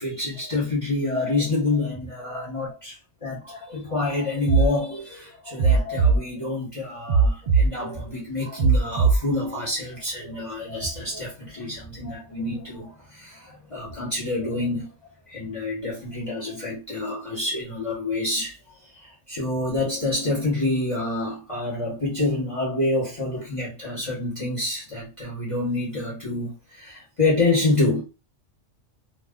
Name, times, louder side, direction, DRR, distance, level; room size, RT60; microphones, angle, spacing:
voice 1, 0.0-3.0 3.2-14.9 15.3-18.6 18.9-28.0, left 2 dB, 30° left, 0.9 m, -27 dB
sound 1, 4.5-4.7 5.6-6.2 7.1-7.7 8.6-9.2, right 4 dB, 55° right, 0.6 m, -18 dB
2.4 x 2.2 x 3.5 m
omnidirectional pair, 1.2 m